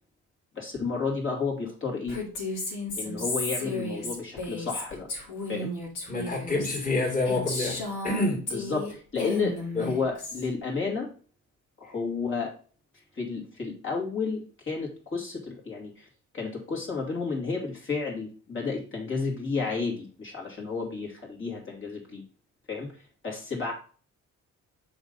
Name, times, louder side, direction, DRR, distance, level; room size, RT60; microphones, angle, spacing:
voice 1, 0.5-2.2 3.0-5.1 5.5-5.7 8.5-11.1 11.8-12.5 13.1-16.1 16.3-22.2 22.7-23.7, left 4 dB, 40° left, -3 dB, 2.6 m, -32 dB
Female speech woman speaking, 2.1-8.9 9.2-10.5, left 2 dB, 85° left, 3.0 m, -34 dB
voice 2, 6.1-8.4 9.8-9.9, left 2 dB, 25° left, -2 dB, 2.5 m, -28 dB
6.1 x 4.0 x 5.3 m, 0.40 s
cardioid pair, 90°, 30 cm